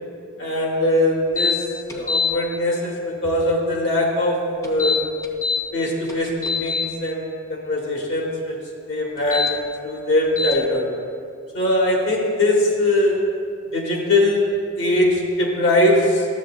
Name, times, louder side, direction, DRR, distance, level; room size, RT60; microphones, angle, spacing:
voice 1, 0.4-5.0 5.7-8.6 8.9-9.5 9.8-10.9 11.5-13.2 13.7-16.3, left 1 dB, 65° left, -2 dB, 1.3 m, -21 dB
sound 1, 1.4-1.5 1.9-2.3 4.6-5.6 6.1-6.8 9.2-9.5 10.4-10.5, left 5 dB, 15° left, 0.6 m, -23 dB
12.0 x 7.2 x 2.4 m, 2.4 s
head